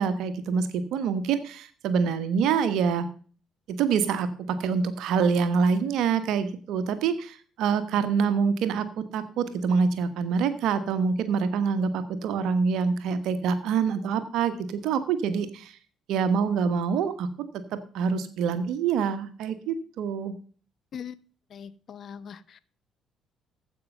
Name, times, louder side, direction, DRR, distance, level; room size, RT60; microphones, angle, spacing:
voice 1, 0.0-3.1 3.7-15.8 16.1-17.3 17.5-20.3, right 6 dB, 60° right, 1.2 m, -26 dB
voice 2, 21.5-22.6, left 8 dB, 50° left, 0.8 m, -41 dB
14.5 x 5.6 x 5.4 m
figure-of-eight pair, 45°, 0 cm